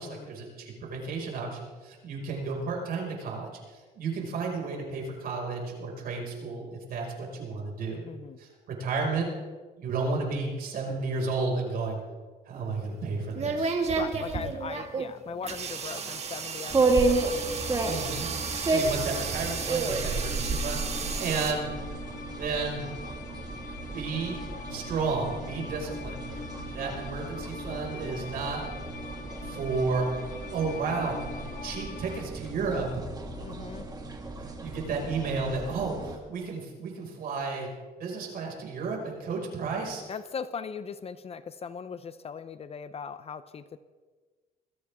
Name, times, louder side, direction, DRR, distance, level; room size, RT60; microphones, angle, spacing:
voice 1, 0.0-8.0 8.4-9.3 9.8-12.0 12.5-13.8 17.8-21.7 22.4-22.9 23.9-24.4 24.7-26.2 26.7-28.6 29.4-30.1 30.5-31.4 31.6-33.0 34.4-37.7 38.0-40.0, right 4 dB, 60° right, 0 dB, 5.5 m, -32 dB
voice 2, 8.1-8.4 14.0-17.6 17.9-18.2 33.4-33.9 40.1-43.8, left 6 dB, 35° left, 13 dB, 0.7 m, -39 dB
sound 1, 12.5-21.5, right 5 dB, 40° right, 1.9 m, -33 dB
sound 2, 16.7-36.2, right 3 dB, 25° right, 2.0 m, -32 dB
sound 3, 17.0-32.2, left 4 dB, 55° left, 1.3 m, -44 dB
21.0 x 15.0 x 3.6 m, 1.4 s
cardioid pair, 110°, 17 cm